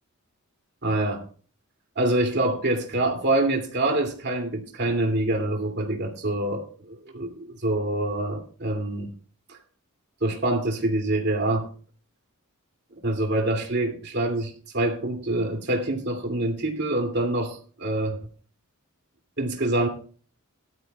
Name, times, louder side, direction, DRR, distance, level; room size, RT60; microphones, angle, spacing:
voice 1, 0.8-1.2 2.0-9.1 9.5-9.6 10.2-11.7 13.0-18.2 19.4-19.9, right 1 dB, 55° right, 2 dB, 2.5 m, -26 dB
18.5 x 12.5 x 2.3 m, 0.40 s
head